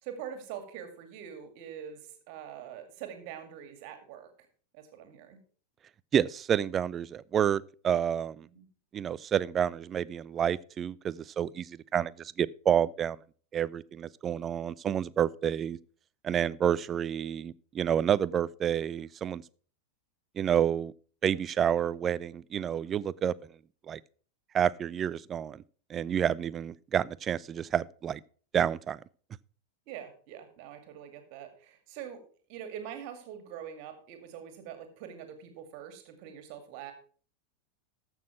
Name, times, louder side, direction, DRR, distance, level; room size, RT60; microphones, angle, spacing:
voice 1, 0.0-4.3 4.7-5.4 8.5-8.7 16.5-16.6 29.9-32.2 32.5-36.9, right 9 dB, 45° right, 2.1 m, -44 dB
voice 2, 6.1-8.5 8.9-13.2 13.5-15.8 16.2-19.4 20.4-20.9 21.2-23.4 23.9-24.0 24.5-25.6 25.9-28.2 28.5-29.0, right 9 dB, 25° right, 0.4 m, -29 dB
14.0 x 6.2 x 4.6 m
figure-of-eight pair, 90°, 0 cm